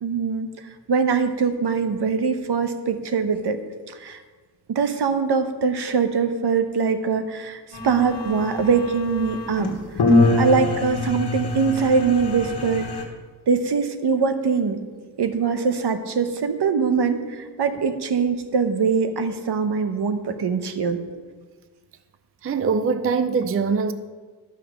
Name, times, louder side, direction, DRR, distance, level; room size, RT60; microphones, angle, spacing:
voice 1, 0.0-0.5 0.9-3.6 3.9-4.2 4.7-9.7 10.4-12.9 13.5-14.8 15.2-21.0, right 5 dB, 75° right, 9 dB, 1.0 m, -22 dB
sound 1, 7.7-13.0, left 2 dB, 75° left, 1.5 m, -24 dB
voice 2, 22.4-23.9, right 5 dB, 35° right, 11 dB, 0.5 m, -22 dB
12.0 x 5.6 x 6.5 m, 1.4 s
wide cardioid pair, 105°, 40 cm